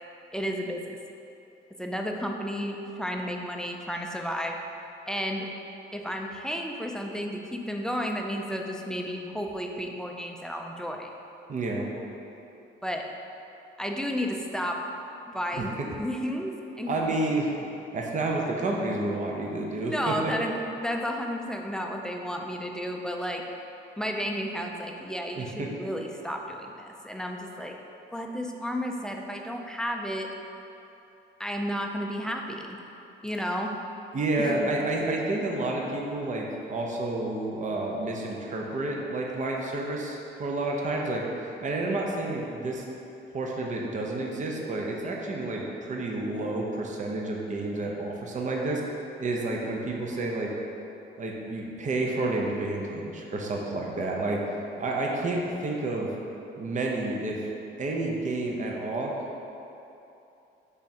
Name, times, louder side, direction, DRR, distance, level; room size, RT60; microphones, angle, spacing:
voice 1, 0.3-1.0 1.8-4.6 5.1-5.5 5.9-11.1 12.8-13.1 13.8-14.8 15.3-15.7 16.0-17.0 19.8-23.4 24.0-27.8 28.1-30.3 31.4-32.8 33.2-33.7 34.4-34.7 45.0-45.1, equal, 5° left, 2 dB, 0.3 m, -32 dB
voice 2, 11.5-11.9 15.6-15.7 16.9-20.3 25.4-25.7 34.1-42.8 43.3-48.8 49.2-50.5 51.2-54.4 54.8-56.1 56.6-57.4 57.8-59.1, right 2 dB, 40° right, -1 dB, 0.6 m, -30 dB
3.6 x 3.5 x 4.2 m, 2.9 s
cardioid pair, 90°, 20 cm